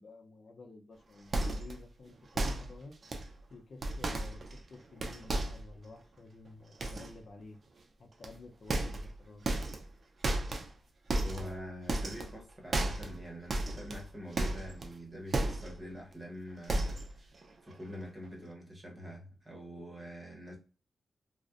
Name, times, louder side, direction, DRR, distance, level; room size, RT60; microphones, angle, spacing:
voice 1, 0.0-3.0 3.5-7.6 8.0-9.4, left 3 dB, 60° left, 0.5 m, -51 dB
sound 1, 1.3-1.8 2.3-2.8 3.0-3.3 3.8-4.7 5.0-5.7 6.8-7.1 8.2-8.4 8.7-9.2 9.4-9.9 10.2-10.7 11.1-11.6 11.9-12.4 12.7-13.2 13.5-14.9 15.3-15.8 16.1-16.2 16.6-17.2 17.4-17.7 18.0-18.1, right 2 dB, 55° right, 0.4 m, -33 dB
voice 2, 11.2-17.3 17.6-20.6, equal, 25° right, 1.0 m, -45 dB
2.5 x 2.0 x 2.4 m
cardioid pair, 80°, 0 cm